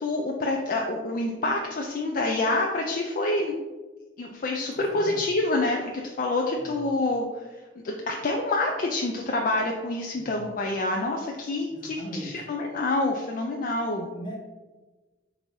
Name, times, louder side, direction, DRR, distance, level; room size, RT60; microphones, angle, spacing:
voice 1, 0.0-3.5 4.2-7.3 7.8-14.1, left 2 dB, 45° left, 1 dB, 0.4 m, -27 dB
voice 2, 4.7-5.2 6.6-6.7 10.1-10.4 11.7-12.4 14.1-14.5, equal, 25° left, -2 dB, 0.9 m, -39 dB
3.9 x 2.7 x 4.5 m, 1.2 s
head